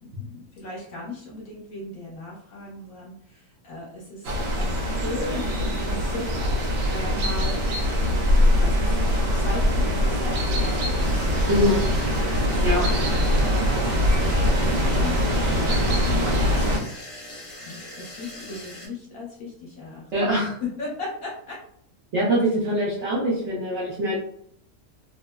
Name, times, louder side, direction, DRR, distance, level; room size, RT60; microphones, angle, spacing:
voice 1, 0.0-4.7 5.0-6.3 6.9-7.6 8.3-11.3 13.0-13.4 13.6-16.8 17.5-20.3 20.8-21.6, left 2 dB, 60° left, -5 dB, 1.1 m, -37 dB
sound 1, 4.2-16.8, equal, 85° right, 1.2 m, -22 dB
sound 2, 11.0-18.9, left 1 dB, 35° left, 0.9 m, -41 dB
voice 2, 11.5-11.8 12.6-12.9 20.1-20.5 22.1-24.2, equal, 60° right, -6 dB, 0.8 m, -23 dB
3.1 x 2.0 x 2.2 m, 0.67 s
omnidirectional pair, 1.8 m